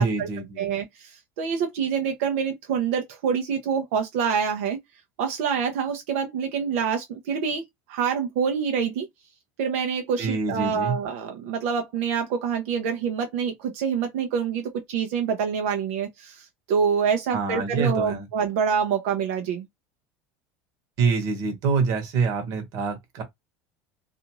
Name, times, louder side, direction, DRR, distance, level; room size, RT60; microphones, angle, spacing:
voice 1, 0.0-0.7 10.2-11.0 17.3-18.3 21.0-23.2, right 5 dB, 50° right, 1.1 m, -25 dB
voice 2, 0.6-4.8 5.2-7.6 7.9-9.1 9.6-19.7, right 6 dB, 85° right, 0.6 m, -26 dB
2.5 x 2.5 x 2.9 m
cardioid pair, 155°, 7 cm